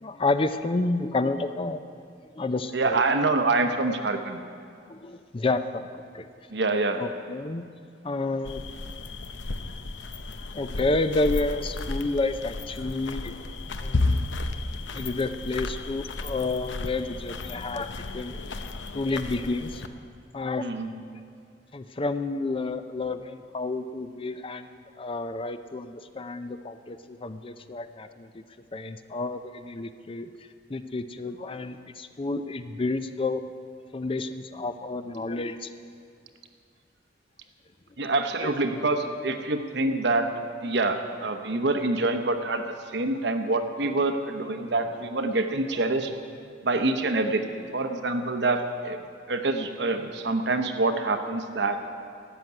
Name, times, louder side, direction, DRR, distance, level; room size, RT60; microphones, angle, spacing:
voice 1, 0.0-1.8 2.4-3.0 4.9-5.8 6.1-6.3 7.0-7.6 8.0-8.6 10.5-13.3 13.7-14.1 14.9-18.4 18.9-19.8 20.3-20.7 21.7-28.4 28.7-30.3 30.7-33.4 33.9-35.7 38.4-38.5 44.5-44.7, left 2 dB, 30° left, 10 dB, 0.5 m, -30 dB
voice 2, 2.7-4.4 6.5-7.0 20.6-20.9 38.0-40.3 40.6-42.6 42.9-46.1 46.6-49.0 49.3-51.8, right 2 dB, 65° right, 7 dB, 1.0 m, -26 dB
sound 1, 8.5-19.9, left 2 dB, 80° left, 0.7 m, -33 dB
13.0 x 7.5 x 9.4 m, 2.2 s
head